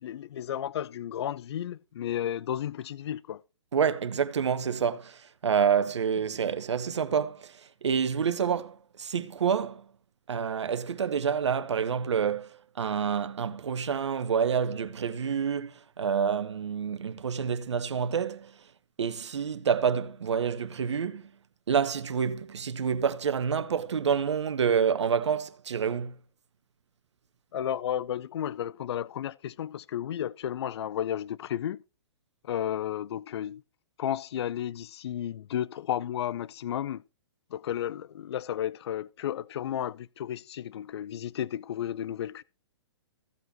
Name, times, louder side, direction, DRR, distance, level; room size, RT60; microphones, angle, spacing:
voice 1, 0.0-3.4 27.5-31.8 32.4-33.6 34.0-37.0 37.5-42.4, left 10 dB, 65° left, 0.4 m, -33 dB
voice 2, 3.7-9.8 10.3-18.6 19.0-21.3 21.7-26.1, right 7 dB, 75° right, 1.0 m, -28 dB
15.0 x 7.9 x 2.9 m
figure-of-eight pair, 120°, 15 cm